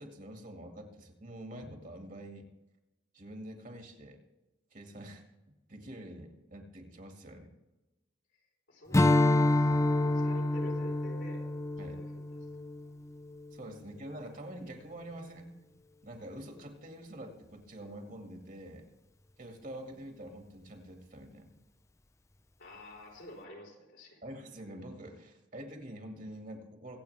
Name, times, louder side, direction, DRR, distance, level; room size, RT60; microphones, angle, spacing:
voice 1, 0.0-2.5 3.1-4.2 4.7-5.2 5.7-7.5 9.6-9.8 11.8-12.0 13.5-15.5 16.0-18.8 19.4-21.5 24.2-27.0, right 1 dB, 45° right, 3 dB, 2.2 m, -46 dB
voice 2, 8.7-11.4 11.8-12.3 13.9-14.1 22.6-24.2, left 1 dB, 75° left, -1 dB, 4.2 m, -49 dB
Strum, 8.9-13.6, left 2 dB, 15° left, 0.5 m, -28 dB
24.0 x 8.6 x 3.5 m, 1.1 s
head